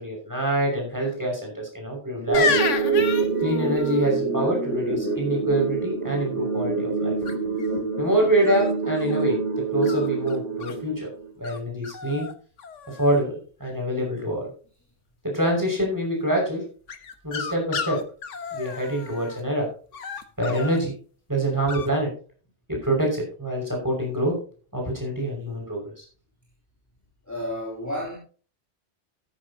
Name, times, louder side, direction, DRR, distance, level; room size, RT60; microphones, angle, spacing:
voice 1, 0.0-2.6 3.4-7.2 8.0-11.1 11.4-12.3 12.9-14.5 15.2-16.6 17.2-18.0 18.5-19.7 20.4-20.9 21.3-22.1 22.7-24.4 24.7-26.0, right 1 dB, 15° right, -1 dB, 5.7 m, -25 dB
sound 1, 2.3-4.1 7.3-7.7 8.4-9.2 9.8-10.8 11.4-11.6 11.8-12.3 12.6-13.2 16.9-19.4 19.9-20.8 21.7-21.9, left 6 dB, 85° left, 1.5 m, -31 dB
sound 2, 2.3-11.3, right 5 dB, 75° right, 3.4 m, -26 dB
voice 2, 27.2-28.2, left 1 dB, 15° left, -5 dB, 3.4 m, -31 dB
13.0 x 12.0 x 2.8 m, 0.39 s
omnidirectional pair, 1.2 m